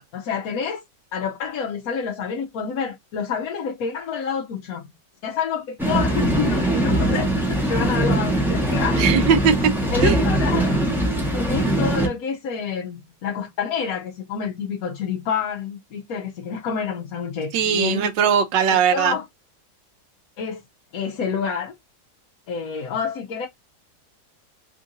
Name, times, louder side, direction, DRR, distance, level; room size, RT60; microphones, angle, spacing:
voice 1, 0.1-0.8 1.1-4.9 5.2-9.0 9.9-10.8 11.3-18.1 18.6-19.3 20.4-20.6 20.9-21.7 22.5-23.5, left 6 dB, 65° left, 1.0 m, -28 dB
sound 1, 5.8-12.1, right 1 dB, ahead, 0.7 m, -21 dB
voice 2, 8.9-9.5 10.0-10.2 17.5-19.2, right 7 dB, 85° right, 1.4 m, -19 dB
3.6 x 2.5 x 3.7 m
omnidirectional pair, 1.9 m